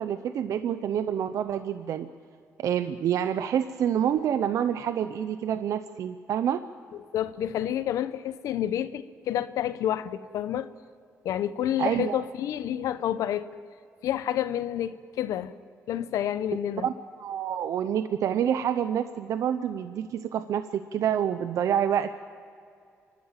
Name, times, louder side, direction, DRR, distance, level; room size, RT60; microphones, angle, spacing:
voice 1, 0.0-2.1 2.6-6.6 11.8-12.2 16.8-16.9 17.2-22.2, right 9 dB, 75° right, 10 dB, 0.7 m, -27 dB
voice 2, 7.1-10.7 11.2-13.5 14.0-15.5 15.9-16.9, left 11 dB, 85° left, 13 dB, 0.8 m, -29 dB
28.0 x 12.5 x 8.9 m, 2.4 s
cardioid pair, 100°, 6 cm